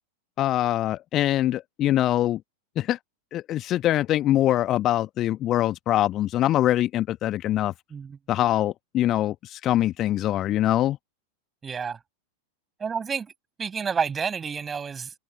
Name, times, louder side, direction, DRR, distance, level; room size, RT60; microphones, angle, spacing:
voice 1, 0.4-2.4 2.8-3.0 3.3-7.7 8.3-11.0, left 13 dB, 30° left, 1.3 m, -23 dB
voice 2, 11.6-12.0 12.8-13.3 13.6-15.2, right 6 dB, 20° right, 6.6 m, -29 dB
figure-of-eight pair, 90°, 0 cm